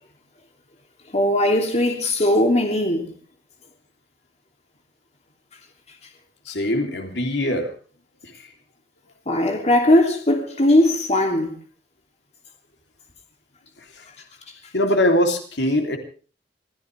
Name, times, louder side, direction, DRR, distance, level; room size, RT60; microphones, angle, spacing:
voice 1, 1.1-3.1 9.3-11.5, left 1 dB, 40° left, 3.0 m, -19 dB
voice 2, 6.5-7.7 8.2-8.5 13.9-14.1 14.7-16.0, left 1 dB, 80° left, 3.4 m, -22 dB
26.0 x 15.5 x 3.5 m
head